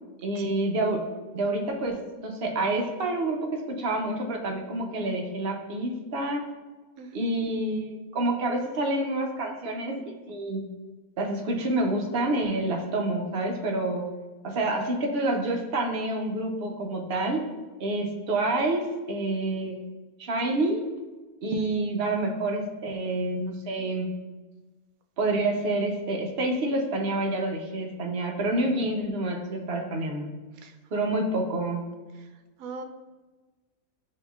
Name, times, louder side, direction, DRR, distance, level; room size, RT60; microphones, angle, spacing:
voice 1, 0.2-1.0 1.3-6.4 7.1-10.6 11.2-14.0 14.4-17.5 17.8-19.8 20.2-20.8 21.4-24.1 25.2-30.3 30.9-31.8, right 2 dB, 55° right, 2 dB, 0.7 m, -28 dB
voice 2, 30.6-31.1 32.6-32.8, right 3 dB, 75° right, 6 dB, 1.0 m, -40 dB
8.1 x 2.8 x 2.3 m, 1.2 s
omnidirectional pair, 1.5 m